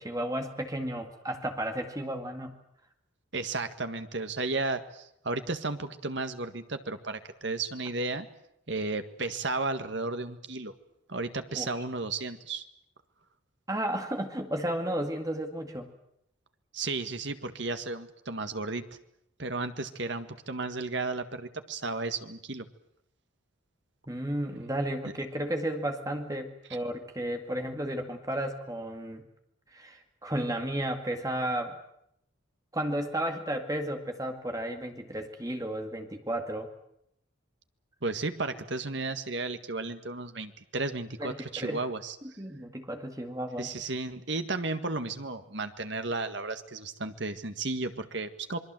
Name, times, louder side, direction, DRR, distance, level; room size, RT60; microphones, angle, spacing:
voice 1, 0.0-2.5 11.5-11.8 13.7-15.9 24.1-29.2 29.7-31.8 32.7-36.7 41.2-41.9 42.2-43.7, right 1 dB, 15° right, 5 dB, 2.1 m, -33 dB
voice 2, 3.3-8.3 8.7-10.7 11.1-12.6 16.7-18.8 19.4-22.7 38.0-42.1 43.6-48.6, right 3 dB, 60° right, 9 dB, 1.8 m, -33 dB
27.0 x 22.5 x 7.7 m, 0.76 s
head